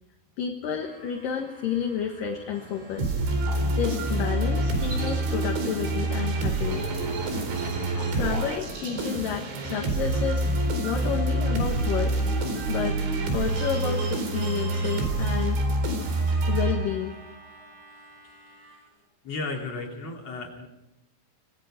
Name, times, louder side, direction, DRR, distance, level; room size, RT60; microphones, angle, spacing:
voice 1, 0.4-3.1 3.7-6.9 8.0-10.5 10.8-12.1 12.7-13.0 13.3-15.6 16.5-17.1, left 8 dB, 60° left, 3 dB, 2.7 m, -30 dB
Harmonica, 0.8-19.0, right 1 dB, 70° right, 9.2 m, -51 dB
sound 1, 2.5-16.7, equal, 35° right, 4.3 m, -45 dB
sound 2, 3.0-17.3, right 2 dB, 90° right, 6.5 m, -27 dB
voice 2, 17.9-18.9 19.2-20.7, left 3 dB, 40° left, 0 dB, 4.0 m, -36 dB
26.0 x 21.0 x 5.1 m, 0.85 s
omnidirectional pair, 5.2 m